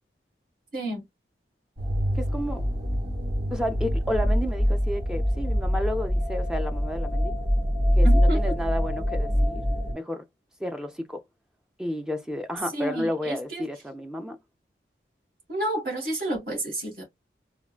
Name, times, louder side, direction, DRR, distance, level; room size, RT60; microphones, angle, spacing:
voice 1, 0.7-1.0 8.0-8.6 12.7-13.6 15.5-17.0, right 1 dB, 50° right, 1.6 m, -30 dB
sound 1, 1.8-9.9, equal, 80° right, 1.3 m, -24 dB
voice 2, 2.2-2.6 3.5-7.3 8.0-9.6 9.9-10.2 10.6-11.2 11.8-14.4, equal, 5° right, 0.4 m, -31 dB
3.5 x 2.2 x 2.4 m
head